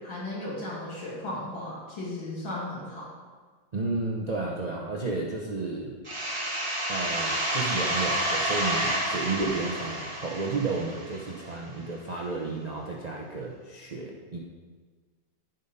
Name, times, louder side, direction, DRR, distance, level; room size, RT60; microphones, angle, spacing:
voice 1, 0.0-3.1, left 1 dB, 85° left, -6 dB, 3.1 m, -35 dB
voice 2, 3.7-6.0 6.9-14.4, right 3 dB, 65° right, -2 dB, 0.4 m, -32 dB
sound 1, 6.1-11.6, right 1 dB, 20° right, 1.2 m, -29 dB
14.5 x 5.2 x 4.2 m, 1.5 s
omnidirectional pair, 2.1 m